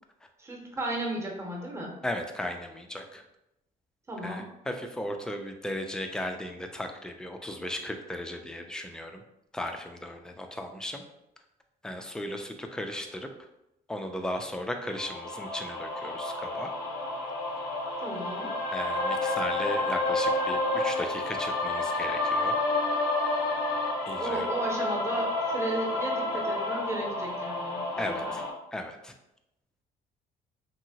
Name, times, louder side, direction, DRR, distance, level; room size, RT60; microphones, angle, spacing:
voice 1, 0.4-1.9 4.1-4.5 18.0-18.5 24.2-27.8 28.2-28.4, right 1 dB, 15° right, -1 dB, 0.7 m, -34 dB
voice 2, 2.0-3.2 4.2-9.2 9.5-11.0 11.8-13.5 13.9-16.7 18.7-22.6 24.1-24.5 28.0-28.4 28.7-29.1, left 1 dB, 5° left, 4 dB, 0.3 m, -36 dB
sound 1, 14.9-28.5, left 2 dB, 85° left, 0.5 m, -30 dB
2.8 x 2.7 x 2.8 m, 0.87 s
cardioid pair, 110°, 17 cm